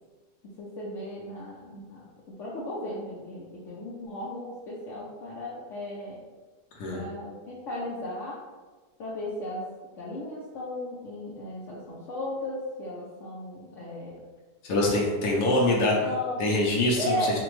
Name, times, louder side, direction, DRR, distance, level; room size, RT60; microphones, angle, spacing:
voice 1, 0.6-2.1 2.4-6.2 6.9-8.4 9.0-9.7 10.0-14.2 15.7-16.4 16.9-17.4, left 1 dB, 60° left, -6 dB, 0.9 m, -35 dB
voice 2, 14.6-15.9 16.4-17.2, left 1 dB, 75° left, -3 dB, 1.2 m, -24 dB
4.9 x 2.2 x 3.0 m, 1.3 s
omnidirectional pair, 1.7 m